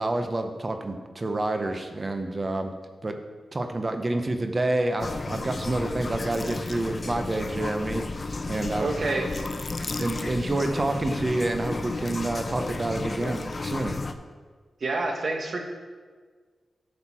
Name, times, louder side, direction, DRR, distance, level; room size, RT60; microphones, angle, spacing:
voice 1, 0.0-2.7 3.0-3.2 3.5-8.9 10.0-14.0, right 2 dB, 30° right, 6 dB, 0.9 m, -28 dB
sound 1, 5.0-14.1, left 3 dB, 40° left, 0.6 m, -33 dB
voice 2, 8.7-9.3 14.8-15.6, right 2 dB, 55° right, 2 dB, 1.4 m, -28 dB
11.0 x 6.7 x 4.4 m, 1.5 s
wide cardioid pair, 90°, 0 cm